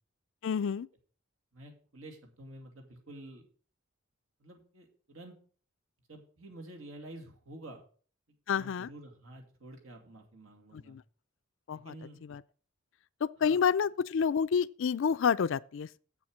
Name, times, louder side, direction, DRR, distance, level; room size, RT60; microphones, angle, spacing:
voice 1, 0.4-0.9 8.5-8.9 10.7-11.0 11.7-11.9 12.3-12.4 13.2-15.9, left 6 dB, 65° left, 0.4 m, -29 dB
voice 2, 1.5-3.4 4.4-5.4 6.1-7.8 8.5-11.0 11.7-12.2 13.4-13.6, right 1 dB, 80° right, 2.5 m, -49 dB
8.0 x 7.2 x 6.3 m
head